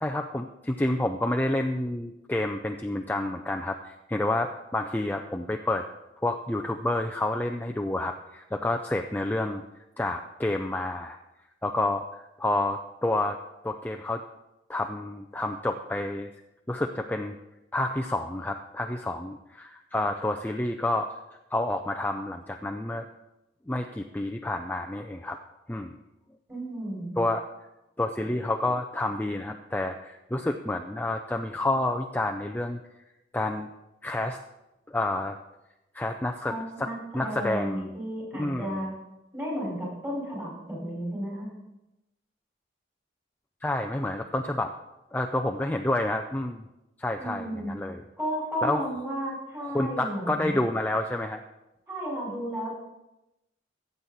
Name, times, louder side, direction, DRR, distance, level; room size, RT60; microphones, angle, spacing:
voice 1, 0.0-5.9 6.2-9.6 10.0-11.2 11.6-13.4 13.6-14.2 14.7-16.3 16.7-17.3 17.7-21.1 21.5-23.0 23.7-25.4 25.7-26.0 27.2-27.4 28.0-32.8 33.3-33.7 34.0-34.4 34.9-35.4 35.9-37.9 38.4-38.8 43.6-44.7 45.1-46.6 47.0-48.0 48.6-48.9 49.7-51.4, left 1 dB, 10° left, 3 dB, 0.4 m, -29 dB
voice 2, 26.5-27.2 36.5-38.9 39.3-41.5 47.2-47.7 48.2-50.6 51.9-52.7, equal, 15° right, -4 dB, 4.9 m, -33 dB
15.0 x 8.0 x 4.1 m, 0.95 s
head